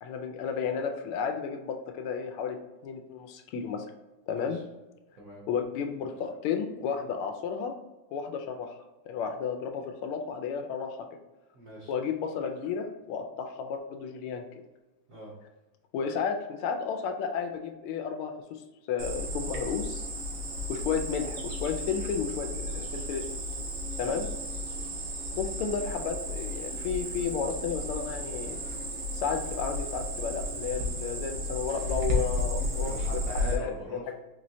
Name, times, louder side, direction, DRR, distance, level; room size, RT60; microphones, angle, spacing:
voice 1, 0.0-2.6 2.8-3.9 4.3-4.6 5.5-7.7 8.1-8.7 9.1-11.1 11.9-14.4 15.9-18.6 18.9-20.1 20.7-23.2 24.0-24.3 25.4-28.6 29.1-33.2 33.5-33.7 34.1-34.2, left 6 dB, 80° left, 5 dB, 1.4 m, -32 dB
voice 2, 4.3-4.6 5.2-5.4 11.5-11.9 15.1-15.3 24.0-24.2 32.8-34.1, equal, 60° right, -5 dB, 0.9 m, -42 dB
Cricket, 19.0-33.5, equal, 85° right, 1.8 m, -33 dB
4.5 x 3.1 x 2.6 m, 1.1 s
omnidirectional pair, 2.4 m